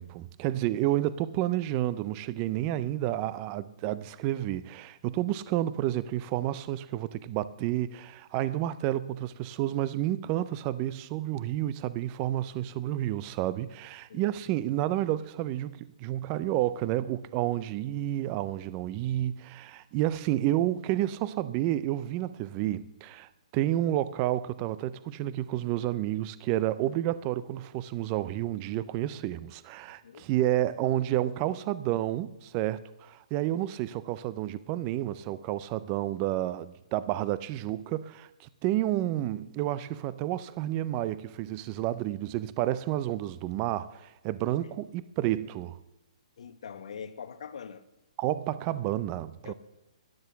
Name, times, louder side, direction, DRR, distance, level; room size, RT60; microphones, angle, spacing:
voice 1, 0.0-45.8 48.2-49.5, right 14 dB, 20° right, 0.4 m, -30 dB
voice 2, 46.4-47.8 49.4-49.5, left 7 dB, 65° left, 1.2 m, -42 dB
12.5 x 9.6 x 6.9 m
hypercardioid pair, 165°, 4 cm